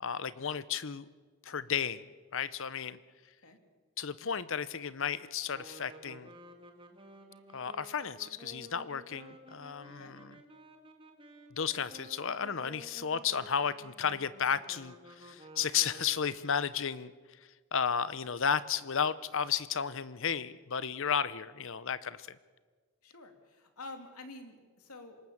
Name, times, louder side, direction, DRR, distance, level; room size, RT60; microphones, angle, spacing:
voice 1, 0.0-1.1 1.4-2.1 2.3-3.0 4.0-6.3 7.5-10.3 11.5-17.1 17.7-22.4, left 7 dB, 60° left, 16 dB, 0.8 m, -33 dB
sound 1, 5.5-16.5, right 1 dB, 25° right, 2.1 m, -53 dB
voice 2, 23.0-25.2, left 2 dB, 80° left, 5 dB, 2.9 m, -48 dB
26.5 x 18.5 x 7.3 m, 1.5 s
head